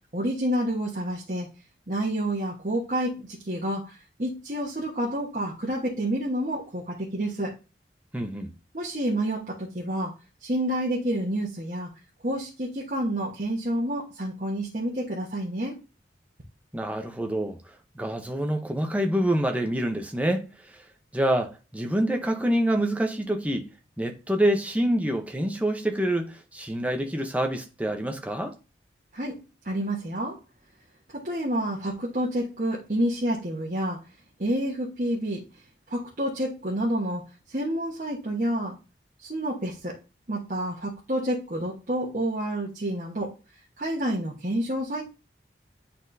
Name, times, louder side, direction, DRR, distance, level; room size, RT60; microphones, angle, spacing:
voice 1, 0.1-1.5 1.9-7.5 8.7-10.1 10.4-11.9 12.2-15.8 29.1-29.4 29.6-30.4 31.1-34.0 34.4-35.4 35.9-38.8 39.2-40.0 40.3-43.3 43.8-45.0, right 1 dB, 45° right, 1.2 m, -29 dB
voice 2, 8.1-8.5 16.7-20.5 20.7-20.8 21.1-23.7 24.0-28.6, right 1 dB, 10° right, 0.7 m, -26 dB
9.5 x 4.2 x 2.7 m
head